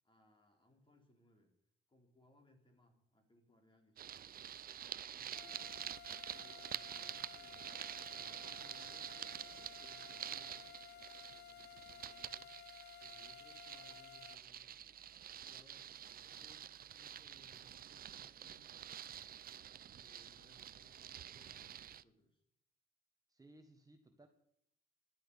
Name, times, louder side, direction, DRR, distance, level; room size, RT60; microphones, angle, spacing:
voice 1, 0.0-1.5 1.9-4.6 5.1-6.0 6.3-10.6 11.3-12.5 13.0-15.0 15.4-15.9 16.2-18.7 19.9-22.4, left 1 dB, 25° left, 3 dB, 3.9 m, -68 dB
sound 1, 4.0-22.0, right 10 dB, 50° right, 0.5 m, -48 dB
sound 2, 5.3-14.4, left 11 dB, 55° left, 0.6 m, -56 dB
voice 2, 23.3-24.3, right 1 dB, 20° right, 5 dB, 1.5 m, -61 dB
16.5 x 11.5 x 5.5 m, 0.76 s
cardioid pair, 90°, 20 cm